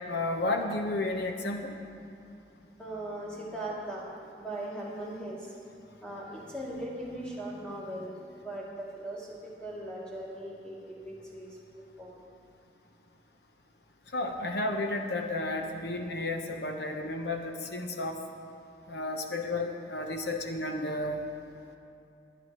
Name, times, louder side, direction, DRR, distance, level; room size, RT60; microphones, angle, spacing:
voice 1, 0.1-1.7 14.1-18.2 18.9-21.2, left 2 dB, 70° left, 3 dB, 1.1 m, -32 dB
voice 2, 2.8-4.0 4.4-5.5 6.0-11.6 12.0-12.2, right 1 dB, 5° left, -7 dB, 2.7 m, -39 dB
23.0 x 9.5 x 3.1 m, 2.7 s
head